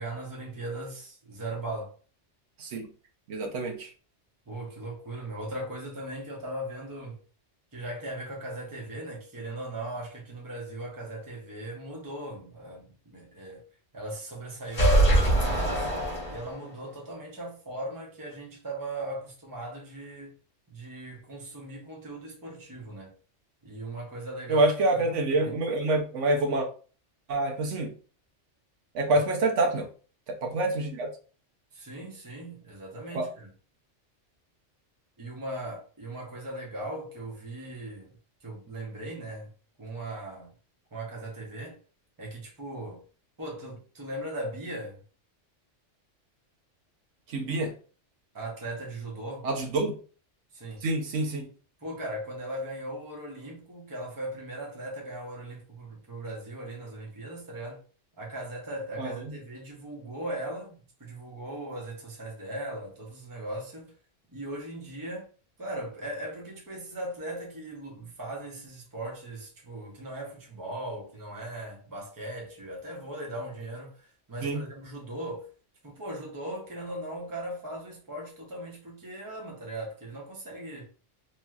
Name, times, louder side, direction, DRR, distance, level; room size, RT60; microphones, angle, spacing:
voice 1, 0.0-1.9 4.5-7.2 7.7-13.7 13.9-15.9 16.3-20.3 20.7-23.1 23.6-25.6 29.1-29.3 31.7-33.5 35.2-38.1 38.4-39.5 39.8-40.5 40.9-41.8 42.2-43.0 43.4-45.0 48.3-49.5 50.5-50.9 51.8-57.8 58.2-63.9 64.3-65.3 65.6-75.5 75.8-80.8, right 1 dB, 20° right, 0.7 m, -38 dB
voice 2, 3.3-3.9 24.5-26.7 27.3-27.9 28.9-29.9 30.4-31.1 33.1-33.2 47.3-47.7 49.4-49.9 50.8-51.5 59.0-59.1 74.4-74.6, right 2 dB, 80° right, 1.0 m, -26 dB
sound 1, 14.7-16.8, right 1 dB, 35° left, 1.2 m, -23 dB
3.0 x 2.6 x 2.3 m
omnidirectional pair, 1.3 m